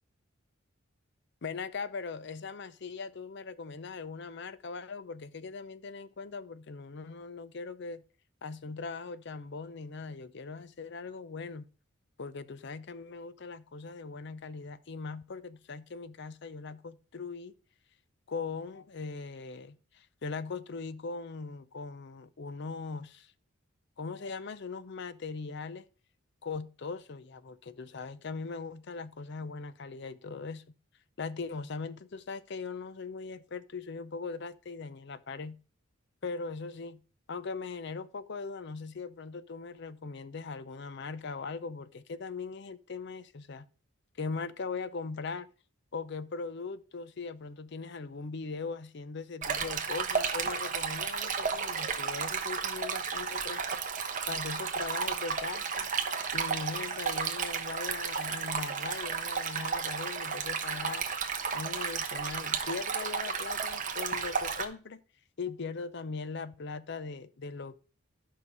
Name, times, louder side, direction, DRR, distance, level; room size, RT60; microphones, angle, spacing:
voice 1, 1.4-8.0 8.4-11.6 12.2-17.5 18.3-23.3 24.0-25.9 26.4-30.6 31.2-35.6 36.2-37.0 37.3-43.7 44.2-45.5 45.9-53.8 54.3-55.9 56.3-61.1 61.5-65.0 65.4-67.8, left 4 dB, 55° left, 0.6 m, -40 dB
Stream, 49.4-64.6, right 6 dB, 40° right, 1.1 m, -33 dB
11.0 x 5.7 x 4.7 m
head